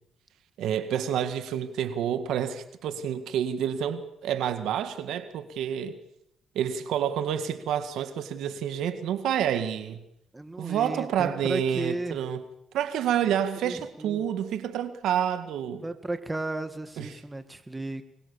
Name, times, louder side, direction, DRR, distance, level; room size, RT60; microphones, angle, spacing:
voice 1, 0.6-6.0 6.6-10.0 10.6-12.4 12.7-15.8 17.0-17.1, right 9 dB, 80° right, 1.9 m, -28 dB
voice 2, 10.3-12.2 13.6-14.2 15.8-18.0, right 2 dB, 15° right, 2.2 m, -34 dB
24.5 x 21.5 x 7.2 m
cardioid pair, 90°, 0 cm